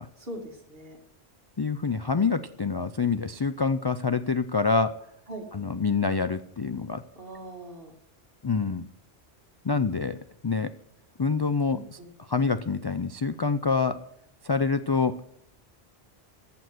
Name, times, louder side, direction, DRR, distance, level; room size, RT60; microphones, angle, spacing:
voice 1, 0.2-1.0 5.3-5.5 7.2-7.9 11.7-12.1, right 1 dB, 60° right, 2 dB, 2.4 m, -41 dB
voice 2, 1.6-4.9 5.5-7.0 8.4-8.9 9.6-10.2 10.4-10.7 11.2-11.8 12.3-14.0 14.4-15.2, left 4 dB, 40° left, 11 dB, 0.3 m, -26 dB
14.0 x 7.1 x 7.7 m, 0.75 s
omnidirectional pair, 1.1 m